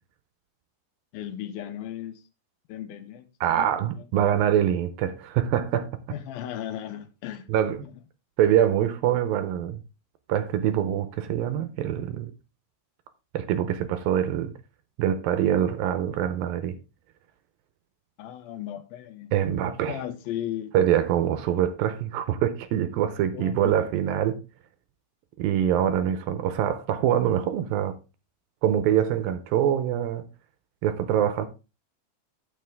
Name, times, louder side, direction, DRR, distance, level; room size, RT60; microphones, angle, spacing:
voice 1, 1.1-2.2 2.7-4.0 6.1-7.5 7.8-7.9 18.2-19.3 19.9-20.7 23.3-23.9, left 11 dB, 80° left, 2.5 m, -36 dB
voice 2, 3.4-5.9 7.5-7.8 8.4-9.8 10.3-12.3 13.3-14.5 15.0-16.8 19.3-20.0 20.7-24.4 25.4-28.0 28.6-30.3 30.8-31.5, right 10 dB, 80° right, 2.3 m, -24 dB
9.5 x 7.5 x 3.5 m
omnidirectional pair, 4.4 m